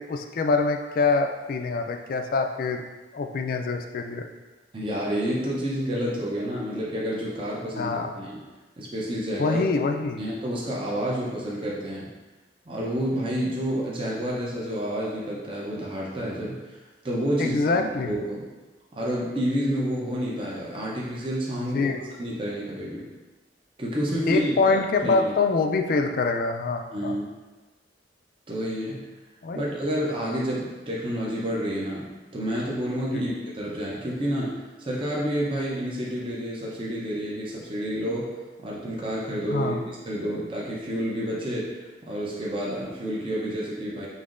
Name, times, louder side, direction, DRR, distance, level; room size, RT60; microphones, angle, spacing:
voice 1, 0.0-2.8 3.1-4.2 7.8-8.1 9.4-10.2 17.4-18.1 21.6-22.0 24.3-27.2 29.4-29.6 33.1-33.2 39.5-39.8, left 4 dB, 50° left, 5 dB, 0.3 m, -25 dB
voice 2, 4.7-8.4 8.8-9.6 10.2-12.1 12.7-16.8 17.0-18.5 18.9-21.9 22.2-23.1 23.8-25.3 26.9-27.3 28.5-29.0 29.5-32.1 32.3-38.3 38.6-39.7 40.1-44.1, equal, 30° right, -5 dB, 0.6 m, -29 dB
5.4 x 3.0 x 2.5 m, 1.2 s
head